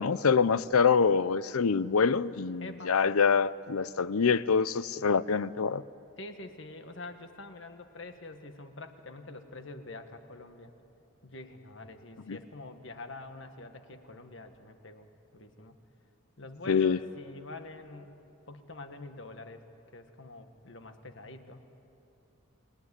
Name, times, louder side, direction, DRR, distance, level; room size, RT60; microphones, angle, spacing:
voice 1, 0.0-5.8 12.3-12.4 16.7-17.0, left 5 dB, 85° left, 17 dB, 0.6 m, -25 dB
voice 2, 2.6-3.0 6.2-10.7 11.2-15.8 16.4-18.2 18.5-19.6 19.9-21.6, left 2 dB, 55° left, 7 dB, 1.6 m, -46 dB
27.5 x 19.5 x 9.8 m, 2.9 s
head